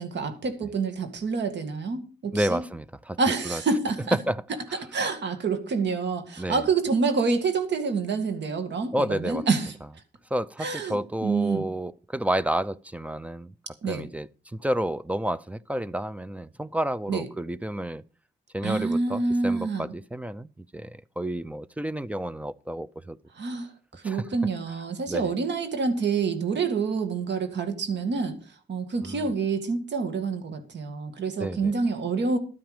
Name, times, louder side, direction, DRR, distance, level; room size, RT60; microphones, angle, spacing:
voice 1, 0.0-2.6 3.2-4.2 4.9-9.7 10.6-11.7 13.8-14.1 17.1-17.3 18.6-19.9 23.3-28.4 28.7-32.4, right 4 dB, 75° right, 2.1 m, -27 dB
voice 2, 2.3-3.2 3.5-3.6 4.1-4.4 4.7-4.8 6.4-6.6 8.9-9.4 10.3-13.5 13.9-18.0 18.5-23.2 24.0-24.2 25.1-25.3 29.0-29.3 31.4-31.7, right 1 dB, 5° right, 0.5 m, -30 dB
12.5 x 9.2 x 5.0 m
cardioid pair, 105°, 18 cm